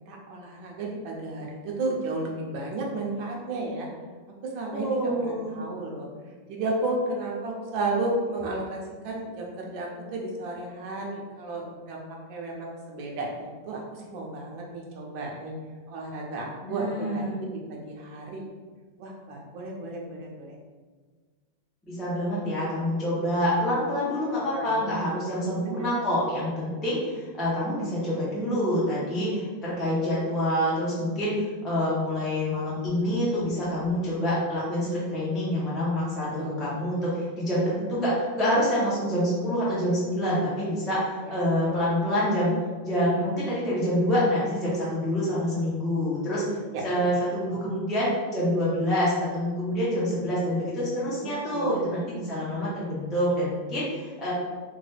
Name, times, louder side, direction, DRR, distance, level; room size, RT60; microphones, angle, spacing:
voice 1, 0.1-3.9 4.5-6.1 6.5-12.0 12.3-15.5 15.9-18.4 19.0-20.5 24.5-24.7 25.6-26.1 36.4-36.6 51.5-52.0, right 2 dB, 90° right, -1 dB, 1.5 m, -33 dB
voice 2, 4.7-5.6 16.6-17.3 21.8-42.5 42.8-46.4 46.8-54.3, equal, ahead, -9 dB, 0.4 m, -27 dB
3.7 x 2.2 x 3.3 m, 1.4 s
omnidirectional pair, 2.0 m